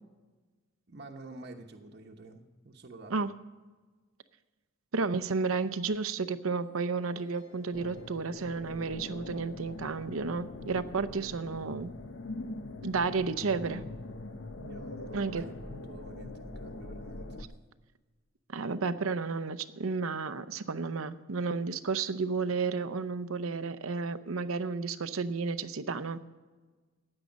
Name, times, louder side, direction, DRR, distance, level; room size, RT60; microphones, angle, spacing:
voice 1, 0.9-3.1 14.6-17.5, right 2 dB, 50° right, 2 dB, 1.0 m, -49 dB
voice 2, 4.9-11.9 12.8-13.8 15.1-15.4 18.5-26.2, right 4 dB, 85° right, 13 dB, 0.7 m, -32 dB
sound 1, 6.6-9.4, left 3 dB, 85° left, 3.0 m, -60 dB
sound 2, 7.7-17.4, left 2 dB, 60° left, 0.8 m, -43 dB
15.5 x 9.8 x 5.3 m, 1.3 s
head